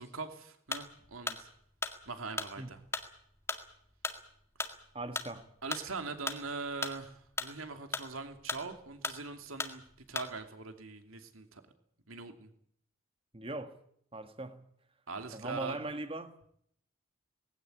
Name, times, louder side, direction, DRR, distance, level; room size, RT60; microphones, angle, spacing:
voice 1, 0.0-1.5 2.1-2.8 5.6-9.8 10.1-11.6 12.1-12.5 15.1-15.8, right 4 dB, 90° right, 2.8 m, -42 dB
sound 1, 0.7-10.5, left 3 dB, 15° left, 1.8 m, -39 dB
voice 2, 4.9-5.5 13.3-13.8 14.1-14.6 15.3-16.4, right 2 dB, 25° right, 1.6 m, -40 dB
20.0 x 16.0 x 9.9 m
head